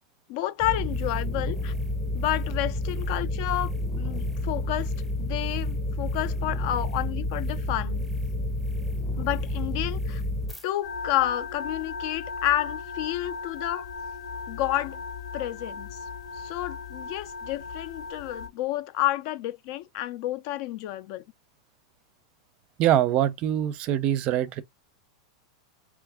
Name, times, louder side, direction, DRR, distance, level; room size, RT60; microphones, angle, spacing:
voice 1, 0.3-1.7 2.1-4.9 5.2-8.0 9.2-10.2 10.6-13.9 14.5-15.0 15.3-15.9 16.4-21.2, left 15 dB, 55° left, 0.4 m, -30 dB
sound 1, 0.6-10.6, left 1 dB, ahead, 0.8 m, -30 dB
sound 2, 10.8-18.5, left 4 dB, 75° left, 0.9 m, -37 dB
voice 2, 22.8-24.6, right 11 dB, 40° right, 0.4 m, -23 dB
3.0 x 2.5 x 3.4 m
supercardioid pair, 140°, 3 cm